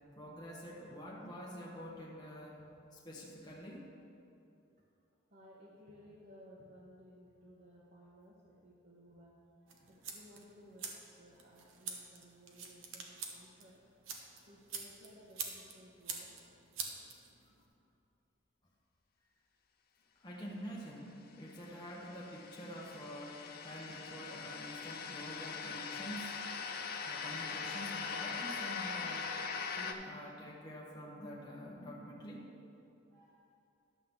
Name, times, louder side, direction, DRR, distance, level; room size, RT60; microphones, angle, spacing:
voice 1, 0.2-2.6 2.9-3.9 20.2-26.3 27.0-29.4 29.7-32.4, equal, 20° left, -4 dB, 0.8 m, -47 dB
voice 2, 5.3-13.8 14.4-16.5 23.6-24.9 33.1-33.5, equal, 40° right, -5 dB, 1.0 m, -59 dB
sound 1, 9.7-17.6, right 5 dB, 70° right, 0.9 m, -46 dB
sound 2, 21.5-29.9, left 5 dB, 45° left, 0.5 m, -41 dB
11.0 x 3.7 x 7.0 m, 2.7 s
head